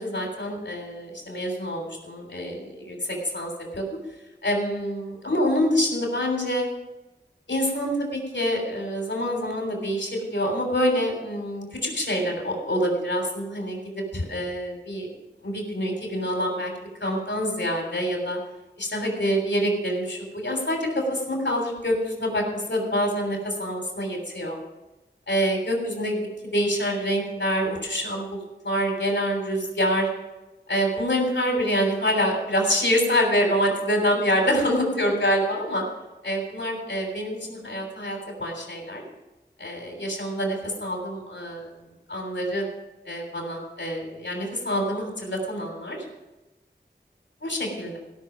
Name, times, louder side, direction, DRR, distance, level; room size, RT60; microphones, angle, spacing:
voice 1, 0.0-3.8 4.4-6.7 7.5-13.8 14.1-15.1 15.4-16.7 17.0-18.4 18.8-24.6 25.3-26.2 26.5-30.1 30.7-35.8 36.2-39.0 39.6-41.7 42.1-42.6 43.0-46.0 47.4-48.0, equal, 85° left, 1 dB, 3.3 m, -26 dB
17.0 x 6.3 x 6.1 m, 1.0 s
wide cardioid pair, 45°, 18 cm